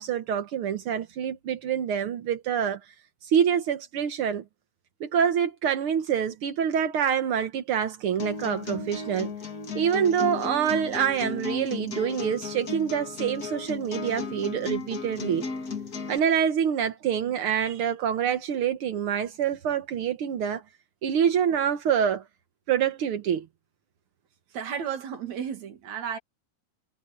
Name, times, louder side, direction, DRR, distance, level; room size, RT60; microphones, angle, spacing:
voice 1, 0.0-2.8 3.2-4.4 5.0-9.3 9.7-15.4 16.1-20.6 21.0-22.2 22.7-23.5, right 8 dB, 80° right, 1.2 m, -26 dB
sound 1, 8.2-16.2, left 5 dB, 35° left, 1.9 m, -35 dB
voice 2, 24.5-26.2, right 8 dB, 55° right, 3.1 m, -33 dB
omnidirectional pair, 4.2 m